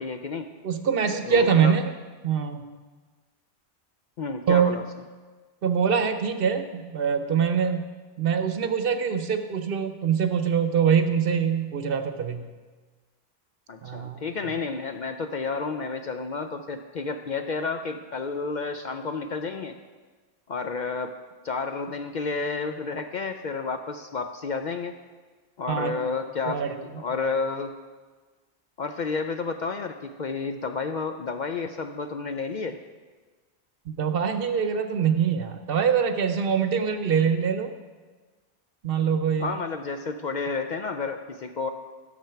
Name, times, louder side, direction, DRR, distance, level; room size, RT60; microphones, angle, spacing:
voice 1, 0.0-0.5 1.2-1.7 4.2-4.8 13.7-19.8 20.5-21.2 21.4-25.0 25.6-26.6 26.9-27.8 28.8-32.8 39.4-41.7, left 4 dB, 55° left, 6 dB, 0.5 m, -31 dB
voice 2, 0.6-1.8 2.2-2.6 4.5-4.7 5.6-7.9 8.2-12.5 13.8-14.5 25.7-25.9 26.5-26.7 27.1-27.2 33.9-37.7 38.8-39.6, right 7 dB, 60° right, 8 dB, 0.9 m, -24 dB
12.5 x 6.8 x 5.7 m, 1.4 s
omnidirectional pair, 1.1 m